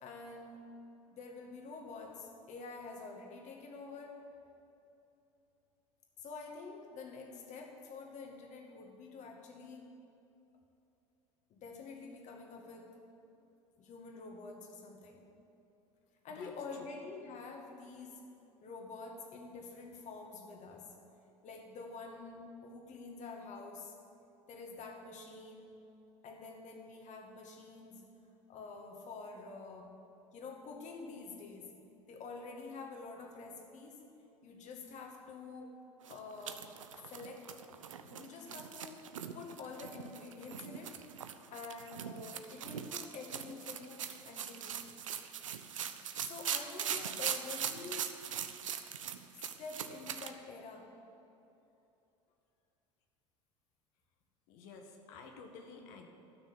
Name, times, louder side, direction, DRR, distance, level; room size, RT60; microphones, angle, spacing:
voice 1, 0.0-0.7 1.1-4.2 6.2-9.9 11.5-13.0 13.8-15.2 16.2-18.2 18.6-20.9 21.4-23.9 24.5-25.8 26.2-28.1 28.5-29.9 30.3-31.7 32.1-34.0 34.4-35.7 36.1-36.6 36.9-39.0 39.3-40.9 41.5-44.8 46.3-48.2 49.3-50.9, left 4 dB, 50° left, 2 dB, 2.2 m, -48 dB
sound 1, 36.1-50.3, right 8 dB, 85° right, 0.6 m, -41 dB
voice 2, 54.5-56.1, left 4 dB, 65° left, 3 dB, 1.7 m, -51 dB
12.0 x 6.4 x 8.9 m, 2.9 s
hypercardioid pair, 70°, 16 cm